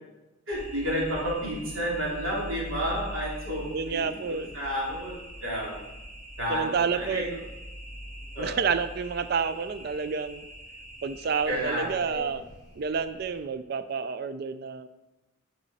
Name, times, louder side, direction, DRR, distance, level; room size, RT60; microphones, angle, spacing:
sound 1, 0.5-13.4, equal, 30° right, 2.1 m, -43 dB
voice 1, 0.5-5.1 5.4-5.7 6.4-7.2 8.3-8.6 11.5-12.2, equal, 80° right, -6 dB, 3.0 m, -31 dB
voice 2, 3.7-4.5 6.5-7.4 8.4-10.5 11.0-12.4 12.8-14.9, right 5 dB, 50° right, 11 dB, 0.4 m, -29 dB
10.0 x 5.4 x 4.1 m, 1.0 s
head